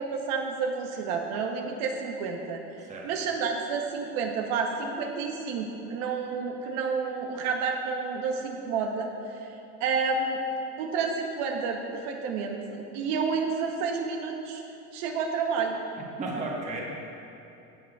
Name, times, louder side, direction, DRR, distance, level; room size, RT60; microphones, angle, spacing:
voice 1, 0.0-2.6 3.0-9.1 9.8-10.4 10.8-14.6 14.9-15.8, right 5 dB, 80° right, 2 dB, 0.9 m, -30 dB
voice 2, 2.8-3.1 16.2-16.8, right 2 dB, 25° right, -2 dB, 1.2 m, -33 dB
14.0 x 7.6 x 2.3 m, 2.8 s
cardioid pair, 145°, 31 cm